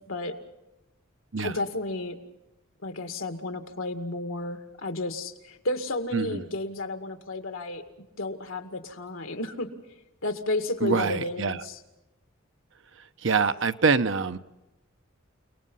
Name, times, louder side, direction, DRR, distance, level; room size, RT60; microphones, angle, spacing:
voice 1, 0.1-0.4 1.4-2.2 2.8-7.8 8.2-9.7 10.2-11.8, left 2 dB, 80° left, 7 dB, 2.1 m, -32 dB
voice 2, 10.8-11.6 13.2-14.4, right 5 dB, 65° right, 10 dB, 0.9 m, -25 dB
30.0 x 19.0 x 5.6 m, 0.95 s
head